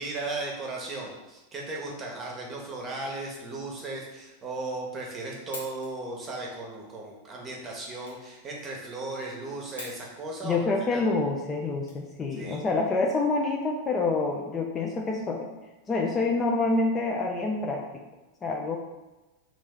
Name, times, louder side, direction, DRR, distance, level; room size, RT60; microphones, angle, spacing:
voice 1, 0.0-10.6 10.9-11.1 12.4-12.6, right 2 dB, 25° right, -1 dB, 0.8 m, -36 dB
sound 1, 5.5-12.6, left 2 dB, 75° left, 0.7 m, -48 dB
voice 2, 10.4-15.5 15.9-18.0 18.4-18.8, left 3 dB, 20° left, 1 dB, 0.3 m, -27 dB
3.0 x 2.5 x 3.6 m, 1.1 s
figure-of-eight pair, 90°, 0 cm